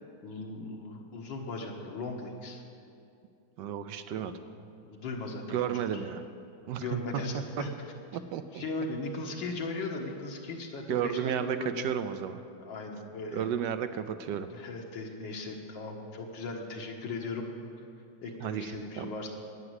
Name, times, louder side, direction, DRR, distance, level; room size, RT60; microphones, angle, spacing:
voice 1, 0.2-2.6 4.2-5.7 6.8-7.7 8.5-11.2 11.6-11.9 12.6-13.5 14.5-17.4 18.2-19.3, left 3 dB, 75° left, 1 dB, 2.1 m, -38 dB
voice 2, 3.6-4.4 5.5-6.2 6.7-7.4 8.1-8.6 10.9-12.4 13.3-14.5 18.4-19.1, right 9 dB, 75° right, 10 dB, 1.1 m, -33 dB
11.0 x 9.7 x 8.0 m, 2.6 s
omnidirectional pair, 2.1 m